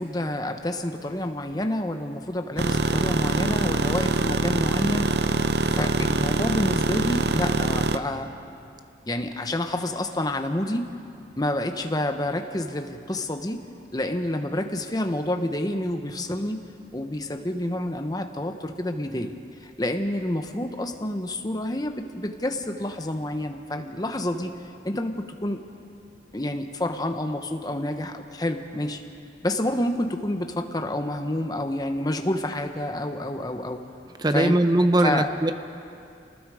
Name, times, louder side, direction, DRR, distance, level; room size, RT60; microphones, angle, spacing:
voice 1, 0.0-5.1 5.4-8.3 9.1-10.9 11.4-13.6 13.9-16.6 16.9-19.3 19.6-24.5 24.8-25.6 26.3-29.0 29.4-33.9 34.3-34.6 35.0-35.3, left 1 dB, 20° left, 6 dB, 1.1 m, -28 dB
sound 1, 2.6-8.0, right 2 dB, 65° right, 0.7 m, -24 dB
voice 2, 34.2-35.5, right 1 dB, 20° right, 9 dB, 0.7 m, -20 dB
28.5 x 19.5 x 4.9 m, 2.5 s
head